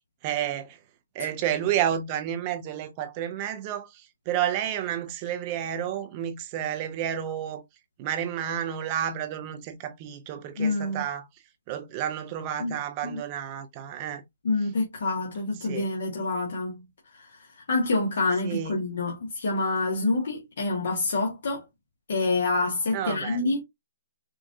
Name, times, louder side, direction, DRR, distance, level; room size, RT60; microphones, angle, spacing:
voice 1, 0.2-0.8 1.1-7.6 8.0-11.3 11.7-14.2 15.7-15.8 18.4-18.7 22.9-23.4, right 10 dB, 25° right, 0.6 m, -30 dB
voice 2, 10.6-11.0 12.6-12.8 13.0-13.2 14.4-16.8 17.1-21.6 22.1-23.6, left 3 dB, 65° left, 1.3 m, -27 dB
4.5 x 2.5 x 2.6 m
hypercardioid pair, 165°, 0 cm